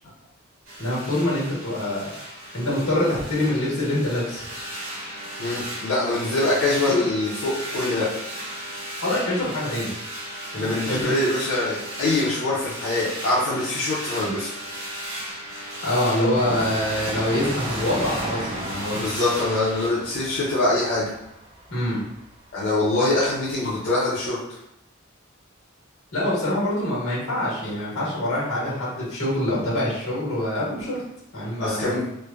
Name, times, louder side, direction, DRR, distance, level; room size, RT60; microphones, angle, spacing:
sound 1, 0.6-19.9, right 1 dB, 70° right, 1.3 m, -35 dB
voice 1, 0.8-2.1 2.5-4.5 9.0-9.9 10.5-11.1 15.8-19.0 21.7-22.0 26.1-31.0 31.3-32.0, left 1 dB, 90° left, -6 dB, 1.2 m, -25 dB
voice 2, 5.4-8.1 10.5-14.5 18.9-21.1 22.5-24.4 31.6-32.0, left 2 dB, 60° left, -8 dB, 0.6 m, -24 dB
Train, 16.3-23.8 24.0-24.1, right 1 dB, 25° right, 0.3 m, -35 dB
3.1 x 2.1 x 2.3 m, 0.82 s
head